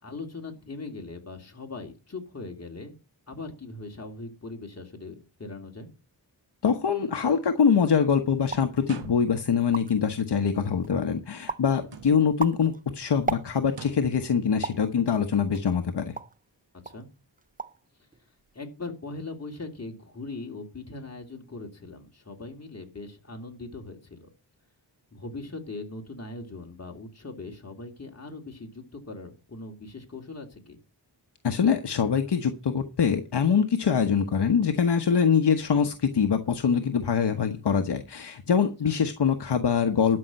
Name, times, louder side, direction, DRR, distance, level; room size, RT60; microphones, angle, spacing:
voice 1, 0.0-2.9 3.3-5.9 16.8-17.1 18.5-24.3 25.1-30.8 38.8-38.9, left 3 dB, 35° left, 2 dB, 3.0 m, -40 dB
voice 2, 6.6-16.1 31.4-40.2, left 6 dB, 70° left, 6 dB, 1.2 m, -24 dB
sound 1, 8.5-8.8 9.3-9.4 9.6-10.1 10.6-11.0 11.5-11.8 12.2-13.9 14.6-14.9 15.5-16.4 16.9-17.1 17.4-17.9 18.1-18.6, right 4 dB, 20° right, 0.5 m, -35 dB
sound 2, 8.8-9.6 11.8-12.5 13.7-14.2, right 6 dB, 75° right, 1.4 m, -43 dB
12.5 x 5.7 x 7.6 m, 0.32 s
wide cardioid pair, 90°, 43 cm